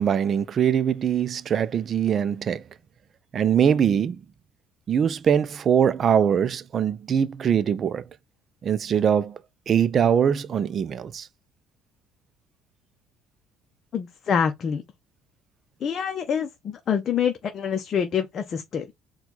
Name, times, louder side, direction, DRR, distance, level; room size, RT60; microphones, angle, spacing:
voice 1, 0.0-2.6 3.3-4.2 4.9-8.0 8.6-9.4 9.7-11.3, right 8 dB, 45° right, 0.4 m, -22 dB
voice 2, 13.9-14.8 15.8-18.9, left 7 dB, 45° left, 0.7 m, -26 dB
4.5 x 2.3 x 3.9 m
supercardioid pair, 90°, 0 cm